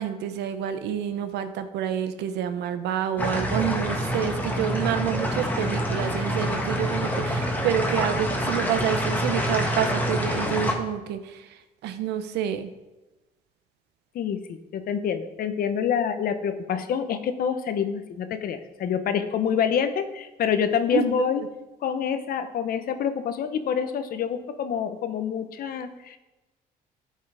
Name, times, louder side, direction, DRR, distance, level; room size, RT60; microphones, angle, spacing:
voice 1, 0.0-11.5 11.8-12.7 20.9-21.2, right 9 dB, 80° right, 10 dB, 0.9 m, -28 dB
sound 1, 3.2-10.8, equal, 10° left, 1.7 m, -26 dB
voice 2, 14.7-21.4 21.8-26.2, left 7 dB, 60° left, 9 dB, 1.1 m, -27 dB
13.0 x 5.6 x 4.9 m, 1.1 s
cardioid pair, 110°, 17 cm